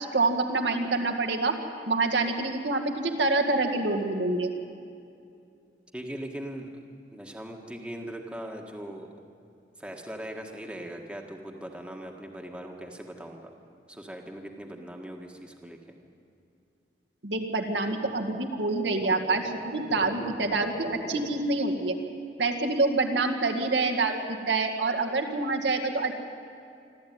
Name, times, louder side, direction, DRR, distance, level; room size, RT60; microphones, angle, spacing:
voice 1, 0.0-1.6 1.9-4.5 17.2-22.0 22.4-24.2 24.5-26.1, right 3 dB, 80° right, 3 dB, 2.1 m, -26 dB
voice 2, 5.9-6.7 7.1-9.1 9.8-13.6 13.9-15.8, right 1 dB, 5° right, 1 dB, 1.7 m, -40 dB
sound 1, 19.0-21.3, left 1 dB, 65° left, 2.6 m, -39 dB
25.5 x 13.5 x 9.5 m, 2.5 s
head